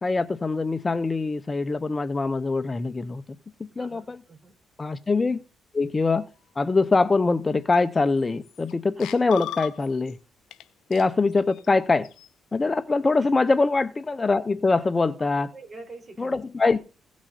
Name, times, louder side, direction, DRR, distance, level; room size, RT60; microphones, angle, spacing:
voice 1, 0.0-3.2 3.6-4.2 4.8-5.4 5.7-6.3 6.6-10.2 10.9-12.1 12.5-15.5 16.2-16.8, left 3 dB, 25° left, 13 dB, 0.6 m, -23 dB
voice 2, 3.8-4.5 9.0-9.1 13.2-13.3 15.2-16.4, right 2 dB, 30° right, 4 dB, 4.4 m, -45 dB
sound 1, 7.7-7.8 8.2-8.7 9.0-10.1 10.5-10.6 10.9-12.3, left 11 dB, 80° left, 0.9 m, -38 dB
17.0 x 6.3 x 4.0 m, 0.34 s
cardioid pair, 90°, 0 cm